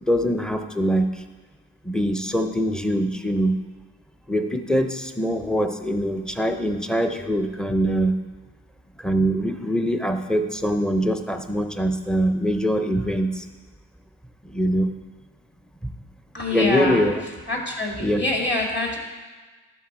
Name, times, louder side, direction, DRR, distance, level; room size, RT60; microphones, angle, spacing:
voice 1, 0.1-1.1 1.9-3.6 4.3-8.2 9.0-13.4 14.5-14.9 16.5-17.2 18.0-18.2, equal, ahead, 7 dB, 0.6 m, -23 dB
voice 2, 16.3-17.0 17.5-19.0, left 2 dB, 30° left, -1 dB, 2.1 m, -25 dB
12.0 x 4.1 x 4.3 m, 1.4 s
cardioid pair, 75°, 35 cm